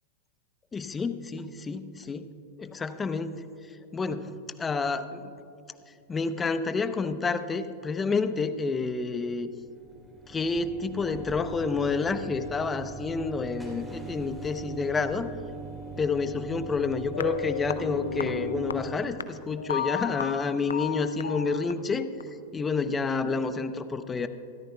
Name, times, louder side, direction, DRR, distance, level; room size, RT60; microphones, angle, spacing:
voice 1, 0.7-2.3 2.6-5.3 5.9-9.5 10.3-15.3 16.0-22.1 22.5-24.3, left 4 dB, 20° left, 11 dB, 0.7 m, -29 dB
sound 1, 9.3-19.0, right 4 dB, 5° right, 3.1 m, -41 dB
sound 2, 17.1-22.2, left 7 dB, 90° left, 0.5 m, -34 dB
24.5 x 13.5 x 2.3 m, 2.6 s
hypercardioid pair, 105°, 0 cm